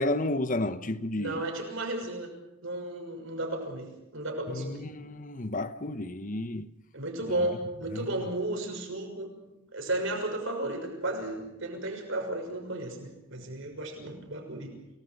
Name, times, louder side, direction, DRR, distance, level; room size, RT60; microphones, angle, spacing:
voice 1, 0.0-1.5 4.5-6.7 7.4-7.6 7.9-8.1, left 2 dB, 40° left, 1.0 m, -32 dB
voice 2, 1.2-2.4 2.6-4.9 6.9-9.3 9.7-14.7, right 1 dB, 70° right, 6.2 m, -34 dB
29.0 x 19.0 x 6.5 m
head